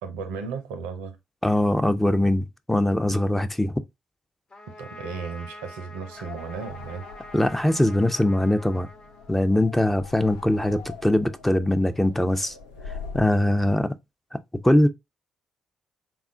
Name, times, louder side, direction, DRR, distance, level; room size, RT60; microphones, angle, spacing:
voice 1, 0.0-1.2 4.7-7.1, right 5 dB, 75° right, 0.5 m, -35 dB
voice 2, 1.4-3.7 7.3-8.9 9.3-12.5 13.1-13.9 14.6-14.9, left 1 dB, 10° left, 0.5 m, -22 dB
Trumpet, 4.5-9.8, left 1 dB, 40° left, 1.0 m, -45 dB
sound 1, 6.1-13.4, left 5 dB, 80° left, 0.4 m, -43 dB
3.6 x 2.4 x 3.4 m
figure-of-eight pair, 40°, 2 cm